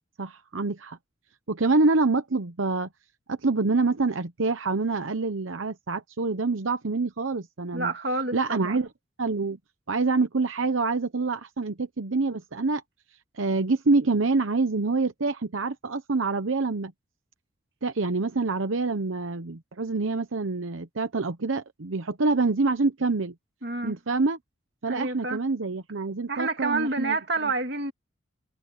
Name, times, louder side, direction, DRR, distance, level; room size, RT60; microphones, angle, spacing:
voice 1, 0.2-1.0 1.5-2.9 3.3-7.9 8.3-8.9 9.2-9.6 9.9-12.8 13.3-16.9 17.8-23.3 23.8-24.4 24.8-27.2, right 3 dB, 85° right, 0.9 m, -26 dB
voice 2, 7.7-8.8 23.6-24.0 24.9-25.4 26.3-27.9, right 3 dB, 55° right, 2.5 m, -28 dB
head